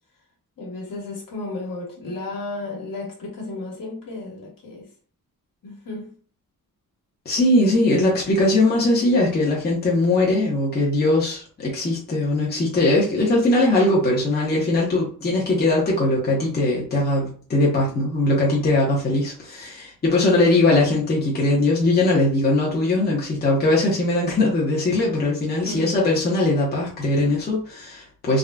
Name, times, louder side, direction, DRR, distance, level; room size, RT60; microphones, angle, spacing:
voice 1, 0.6-4.9 5.6-6.1 20.1-20.7 25.6-26.0, left 2 dB, 65° left, 1.3 m, -33 dB
voice 2, 7.2-28.4, left 2 dB, 30° left, 0.8 m, -20 dB
3.7 x 2.3 x 2.2 m
wide cardioid pair, 150°, 35 cm